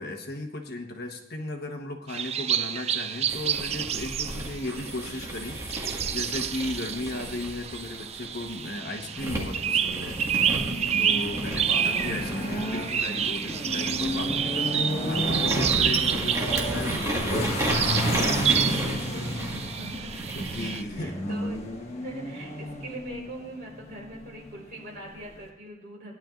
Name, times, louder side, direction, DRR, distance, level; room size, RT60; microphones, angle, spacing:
voice 1, 0.0-10.6 11.0-19.5 20.3-21.4, left 1 dB, 55° left, 3 dB, 1.2 m, -36 dB
sound 1, 2.1-20.8, right 9 dB, 35° right, 0.3 m, -29 dB
sound 2, 3.3-8.7 9.2-20.8, right 1 dB, 15° right, 1.7 m, -33 dB
sound 3, 8.9-25.5, left 1 dB, 35° left, 1.3 m, -34 dB
voice 2, 19.8-21.6 22.0-26.1, right 2 dB, 50° right, -3 dB, 4.2 m, -42 dB
17.0 x 10.5 x 2.5 m, 0.85 s
head